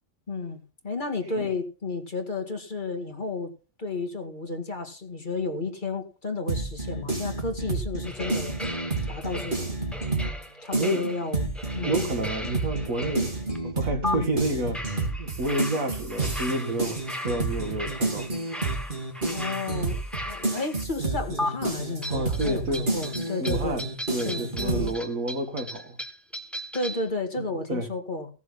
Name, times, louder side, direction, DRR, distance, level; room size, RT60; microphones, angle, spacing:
voice 1, 0.3-3.5 3.8-8.6 9.1-9.8 10.6-12.1 14.0-14.4 19.3-23.8 24.1-24.9 26.7-28.3, left 3 dB, 35° left, 2.1 m, -32 dB
sound 1, 6.5-10.4 10.7-24.9, right 3 dB, 35° right, 4.0 m, -30 dB
sound 2, 8.0-13.6 14.0-14.1 14.7-20.8 21.4-21.5 22.0-27.1, left 1 dB, ahead, 1.4 m, -37 dB
voice 2, 10.7-11.1 11.8-13.3 13.6-14.8 15.2-17.0 17.2-18.3 22.1-23.0 23.4-26.0 27.4-27.9, right 1 dB, 80° right, 2.3 m, -29 dB
17.0 x 7.1 x 5.7 m
omnidirectional pair, 1.4 m